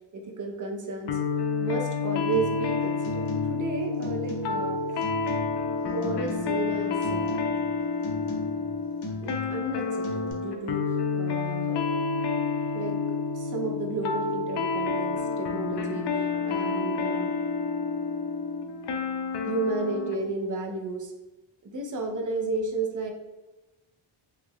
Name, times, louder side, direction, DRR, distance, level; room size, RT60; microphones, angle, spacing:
voice 1, 0.1-1.2 1.6-4.8 5.8-7.5 9.2-11.9 12.7-13.0 13.3-16.1 16.4-17.3 19.4-21.1 21.6-23.1, right 3 dB, 40° right, 2 dB, 0.6 m, -33 dB
sound 1, 1.1-20.2, left 4 dB, 55° left, 0.5 m, -29 dB
sound 2, 2.3-2.7 3.0-3.7 4.0-4.7 5.0-5.7 6.0-6.7 7.0-7.7 8.0-8.7 9.0-9.7 10.0-10.3, left 3 dB, 70° left, 0.9 m, -37 dB
3.4 x 3.2 x 2.3 m, 1.1 s
cardioid pair, 85°, 50 cm